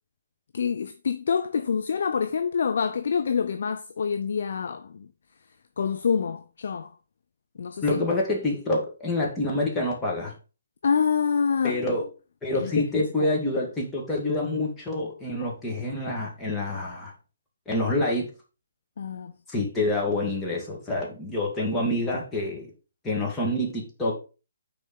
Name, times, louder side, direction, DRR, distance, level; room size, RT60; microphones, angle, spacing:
voice 1, 0.5-5.1 5.8-6.9 7.6-8.0 10.8-12.0 12.5-13.3 19.0-19.3, left 6 dB, 55° left, 0.6 m, -27 dB
voice 2, 7.8-10.3 11.6-12.1 12.4-17.1 17.7-18.3 19.5-22.7 23.0-24.2, left 2 dB, 10° left, 2.1 m, -27 dB
6.4 x 4.3 x 5.4 m
figure-of-eight pair, 135°, 0 cm